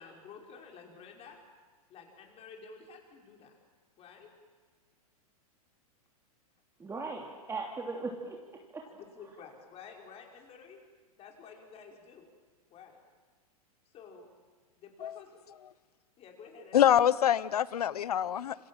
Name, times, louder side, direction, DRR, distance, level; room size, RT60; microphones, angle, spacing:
voice 1, 0.0-1.4 1.9-3.5 4.0-4.3 8.8-10.8 11.2-12.3 12.7-13.0 13.9-14.3 14.8-15.4 16.2-17.0, left 5 dB, 30° left, 5.8 m, -51 dB
voice 2, 6.8-8.8, right 3 dB, 15° right, 3.0 m, -38 dB
voice 3, 16.7-18.6, left 10 dB, 85° left, 1.0 m, -25 dB
27.5 x 27.0 x 7.5 m
hypercardioid pair, 120°, 19 cm